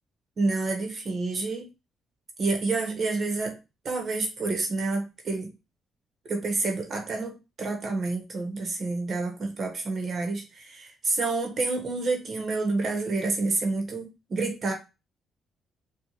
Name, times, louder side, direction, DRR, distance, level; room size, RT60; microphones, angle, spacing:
voice 1, 0.4-1.7 2.4-3.6 3.8-5.5 6.2-14.7, right 3 dB, 50° right, 3 dB, 1.0 m, -28 dB
4.4 x 2.3 x 2.9 m, 0.26 s
cardioid pair, 90°, 0 cm